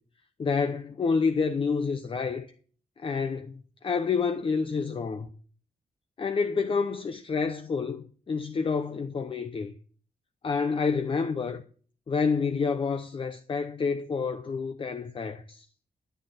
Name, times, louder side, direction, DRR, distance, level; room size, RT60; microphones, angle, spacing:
voice 1, 0.4-2.5 3.0-5.3 6.2-9.7 10.4-11.6 12.1-15.6, left 5 dB, 35° left, 0.7 m, -28 dB
10.0 x 9.3 x 4.2 m
wide cardioid pair, 170°, 15 cm